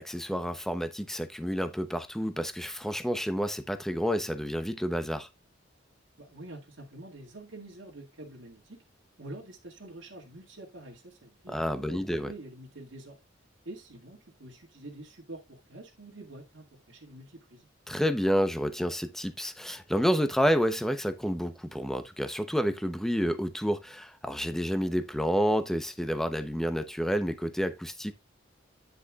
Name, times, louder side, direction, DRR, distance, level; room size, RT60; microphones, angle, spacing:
voice 1, 0.0-5.3 11.5-12.3 17.9-28.1, equal, ahead, 0.8 m, -29 dB
voice 2, 6.2-8.8 9.2-13.2 13.7-17.7, right 2 dB, 75° right, 2.1 m, -46 dB
10.0 x 6.8 x 2.4 m
head